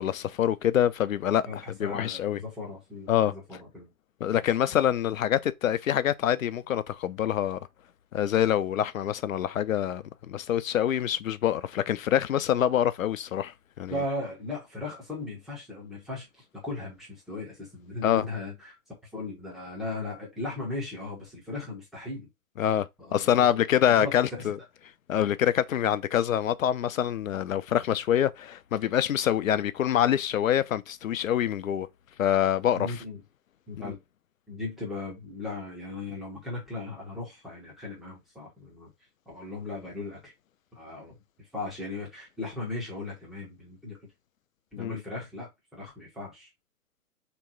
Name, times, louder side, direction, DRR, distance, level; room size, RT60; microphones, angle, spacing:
voice 1, 0.0-1.4 1.8-2.4 3.1-3.3 4.2-7.6 8.1-13.9 18.0-18.2 22.6-24.6 25.1-31.9 32.2-33.0 33.8-33.9 44.8-45.0, left 10 dB, 60° left, 0.6 m, -25 dB
voice 2, 1.4-3.9 4.3-4.5 13.9-18.7 19.1-22.3 23.0-23.6 23.9-24.1 24.4-24.5 32.7-33.2 33.7-34.0 34.5-38.9 39.3-40.3 40.7-44.0 44.7-46.5, left 2 dB, ahead, 0.6 m, -37 dB
3.5 x 3.0 x 4.6 m
figure-of-eight pair, 135°, 45 cm